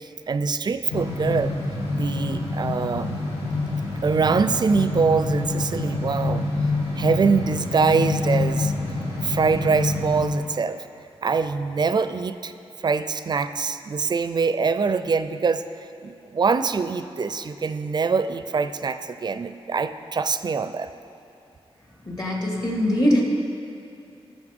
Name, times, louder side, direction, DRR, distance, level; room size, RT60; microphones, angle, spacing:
voice 1, 0.0-1.5 1.9-3.3 4.0-6.5 7.0-10.8 11.2-12.5 12.8-20.9, right 5 dB, 45° right, 11 dB, 0.4 m, -24 dB
sound 1, 0.9-10.2, left 3 dB, 80° left, 2.7 m, -26 dB
voice 2, 22.1-23.2, equal, 40° left, -2 dB, 2.1 m, -22 dB
18.0 x 7.2 x 3.6 m, 2.7 s
wide cardioid pair, 120°, 10 cm